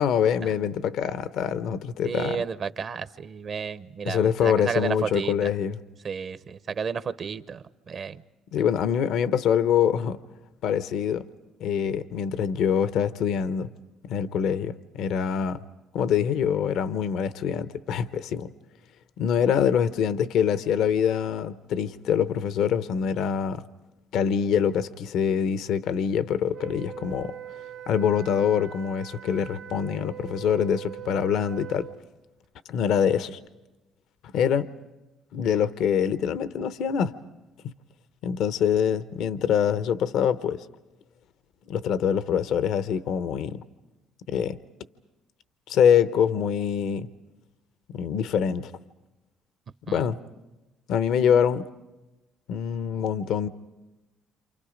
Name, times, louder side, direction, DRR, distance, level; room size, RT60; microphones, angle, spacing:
voice 1, 0.0-2.4 4.1-5.8 8.5-10.2 10.6-11.2 11.6-13.7 14.0-15.6 15.9-18.5 19.2-23.6 24.1-27.4 27.9-31.9 32.7-33.4 34.3-34.7 35.3-37.1 38.2-40.7 41.7-43.6 44.3-44.6 45.7-47.1 47.9-48.7 49.9-50.2 50.9-51.7 52.5-53.5, left 8 dB, 70° left, 0.8 m, -24 dB
voice 2, 2.0-5.5 6.0-8.2 49.9-50.1, right 6 dB, 50° right, 0.8 m, -32 dB
Wind instrument woodwind instrument, 26.5-32.0, right 10 dB, 65° right, 1.6 m, -42 dB
28.5 x 28.0 x 5.1 m
cardioid pair, 90°, 0 cm